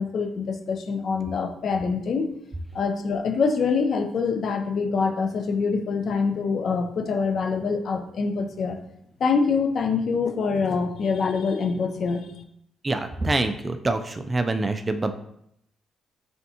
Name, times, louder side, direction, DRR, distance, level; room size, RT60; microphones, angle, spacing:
voice 1, 0.0-2.3 2.7-8.8 9.2-12.3, left 5 dB, 55° left, 5 dB, 0.6 m, -25 dB
voice 2, 12.8-15.1, right 2 dB, 25° right, 8 dB, 0.3 m, -25 dB
4.2 x 3.4 x 2.8 m, 0.74 s
cardioid pair, 90°, 0 cm